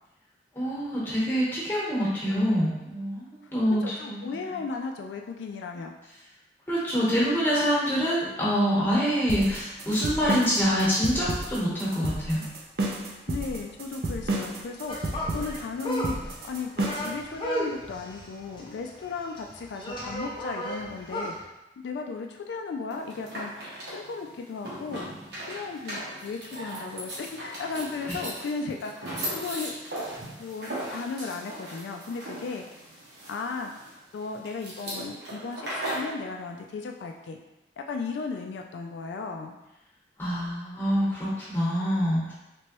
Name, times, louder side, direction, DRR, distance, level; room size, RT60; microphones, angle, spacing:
voice 1, 0.5-4.6 6.7-12.4 28.1-28.2 40.2-42.3, equal, 10° left, -7 dB, 1.0 m, -26 dB
voice 2, 3.8-5.9 13.3-21.5 21.8-23.5 23.9-25.1 25.5-29.8 30.4-32.6 33.3-33.7 34.1-37.4 37.8-39.6, left 4 dB, 75° left, 3 dB, 0.3 m, -35 dB
sound 1, 9.3-17.2, right 2 dB, 55° right, 0.5 m, -31 dB
sound 2, 14.9-21.4, equal, 30° left, 0.5 m, -34 dB
sound 3, 22.9-36.1, right 1 dB, 75° right, 1.0 m, -38 dB
3.4 x 3.0 x 2.9 m, 0.99 s
head